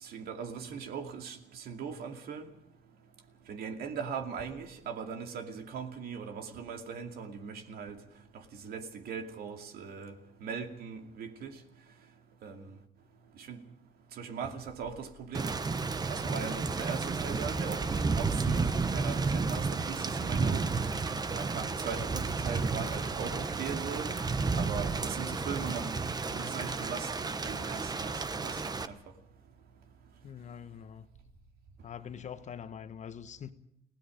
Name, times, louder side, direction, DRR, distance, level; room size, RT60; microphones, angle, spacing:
voice 1, 0.0-2.5 3.5-8.0 8.3-10.1 10.4-11.5 12.4-12.8 13.4-13.6 14.1-15.5 15.9-24.1 24.5-26.0 26.3-29.0, right 6 dB, 65° right, 2.5 m, -40 dB
Thunder / Rain, 15.3-28.9, right 4 dB, 25° right, 1.0 m, -32 dB
voice 2, 30.2-31.1 31.8-33.5, left 8 dB, 45° left, 1.2 m, -44 dB
29.5 x 17.0 x 5.2 m
cardioid pair, 110°, 17 cm